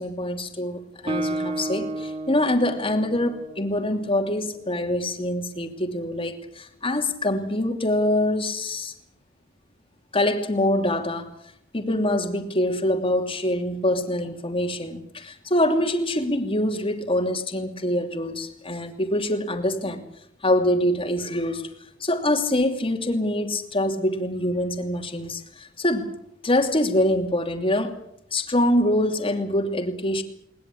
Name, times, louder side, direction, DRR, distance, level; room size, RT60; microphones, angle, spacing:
voice 1, 0.0-8.9 10.1-11.3 11.7-20.0 20.4-21.7 22.0-26.1 26.4-28.0 28.3-30.2, left 1 dB, 30° left, 2.8 m, -24 dB
Guitar, 1.1-4.7, right 1 dB, 30° right, 2.8 m, -32 dB
21.0 x 20.0 x 8.6 m
head